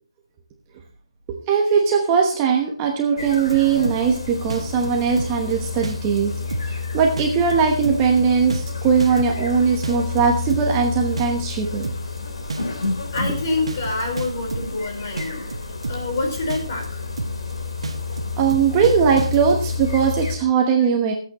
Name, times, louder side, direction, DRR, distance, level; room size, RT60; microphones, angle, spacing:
voice 1, 1.5-6.3 6.6-11.9 18.4-21.1, right 6 dB, 15° right, 1 dB, 1.1 m, -20 dB
sound 1, 3.2-20.4, left 4 dB, 70° left, 3.5 m, -30 dB
sound 2, 3.2-4.2 4.5-5.5 5.8-6.2 6.5-6.8 7.2-9.5 9.8-10.8 11.2-11.5 11.8-12.2 12.5-14.8 15.2-16.2 16.5-16.9 17.2-17.5 17.8-19.6, right 3 dB, 90° right, 1.4 m, -30 dB
voice 2, 13.1-15.4 15.9-17.0, left 3 dB, 30° left, 1 dB, 4.5 m, -27 dB
22.5 x 8.5 x 3.0 m, 0.41 s
hypercardioid pair, 175°, 3 cm